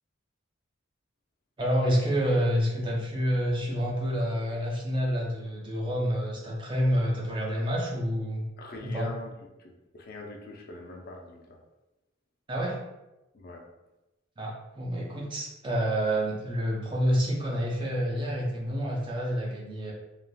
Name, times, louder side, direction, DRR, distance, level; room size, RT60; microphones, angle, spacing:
voice 1, 1.6-8.4 8.8-9.1 12.5-12.8 14.4-19.9, equal, 25° right, -3 dB, 0.5 m, -28 dB
voice 2, 8.6-9.3 9.6-11.4 13.3-13.6, left 2 dB, 45° left, 0 dB, 0.4 m, -42 dB
3.2 x 2.4 x 2.2 m, 1.0 s
head